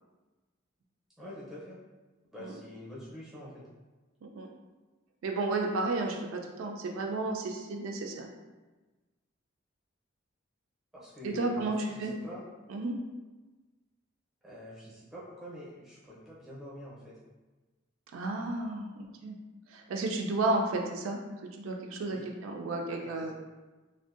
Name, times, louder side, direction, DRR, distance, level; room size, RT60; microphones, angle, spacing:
voice 1, 1.2-1.8 2.3-3.6 10.9-12.4 14.4-17.1 22.1-22.2 23.0-23.3, equal, ahead, -8 dB, 0.6 m, -46 dB
voice 2, 5.2-8.3 11.2-12.1 12.7-12.9 18.1-19.4 19.7-21.2 21.6-23.3, right 2 dB, 80° right, 1 dB, 0.3 m, -32 dB
2.6 x 2.1 x 2.4 m, 1.2 s
head